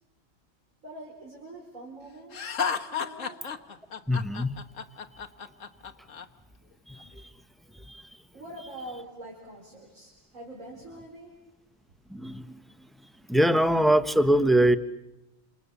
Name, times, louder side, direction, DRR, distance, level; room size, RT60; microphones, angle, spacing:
voice 1, 0.8-2.5 2.8-3.4 8.3-11.4, right 1 dB, 85° right, -2 dB, 5.1 m, -44 dB
Laughter, 2.3-6.2, left 6 dB, 75° left, 1.6 m, -32 dB
voice 2, 4.1-4.5 6.9-7.3 7.9-8.1 12.1-12.6 13.3-14.8, right 1 dB, ahead, 11 dB, 0.9 m, -23 dB
29.0 x 27.5 x 7.1 m, 0.95 s
omnidirectional pair, 1.3 m